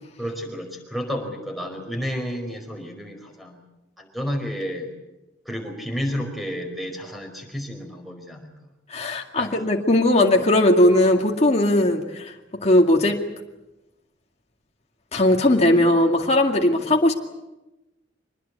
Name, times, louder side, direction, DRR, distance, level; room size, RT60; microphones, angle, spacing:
voice 1, 0.2-3.6 4.0-4.9 5.4-8.5 9.4-9.5, equal, ahead, 4 dB, 4.8 m, -31 dB
voice 2, 8.9-12.3 12.6-13.2 15.1-17.1, left 1 dB, 35° left, 1 dB, 2.2 m, -18 dB
25.0 x 20.5 x 8.4 m, 0.99 s
head